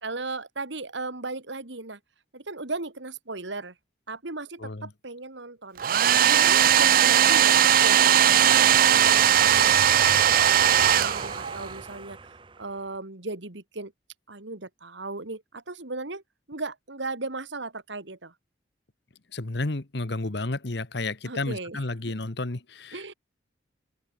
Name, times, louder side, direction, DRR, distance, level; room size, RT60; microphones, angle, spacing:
voice 1, 0.0-2.0 2.3-3.7 4.1-5.8 6.2-7.6 7.8-10.6 10.9-12.2 12.6-13.9 14.3-16.2 16.5-18.3 21.3-21.8 22.9-23.1, right 3 dB, 70° right, 2.2 m, -36 dB
voice 2, 4.6-4.9 19.3-23.0, left 2 dB, 60° left, 1.3 m, -31 dB
Domestic sounds home sounds, 5.8-11.7, right 10 dB, 45° right, 0.4 m, -19 dB
sound 1, 8.2-12.9, right 4 dB, 25° right, 0.8 m, -37 dB
open air
head